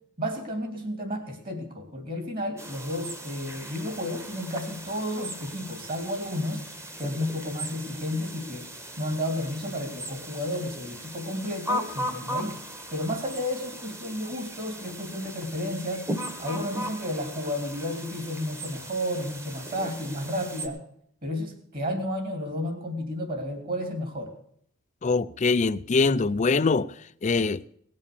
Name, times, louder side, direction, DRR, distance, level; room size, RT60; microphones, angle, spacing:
voice 1, 0.2-6.7 7.0-8.7 9.0-12.6 12.9-16.1 16.4-20.8 21.2-24.3, left 1 dB, 40° right, 3.0 m, -32 dB
sound 1, 2.6-20.7, right 1 dB, 15° right, 1.2 m, -38 dB
voice 2, 25.0-26.9 27.2-27.6, left 4 dB, 35° left, 0.4 m, -23 dB
18.5 x 7.5 x 6.9 m
head